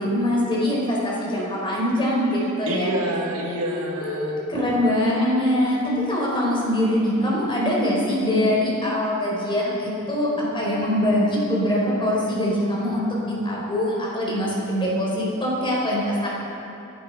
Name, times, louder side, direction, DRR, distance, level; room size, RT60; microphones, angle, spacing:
voice 1, 0.0-2.9 4.0-5.8 6.1-16.3, left 1 dB, 25° left, -4 dB, 4.7 m, -23 dB
voice 2, 2.7-4.4, right 1 dB, 75° right, 0 dB, 1.9 m, -27 dB
25.5 x 11.0 x 4.8 m, 3.0 s
head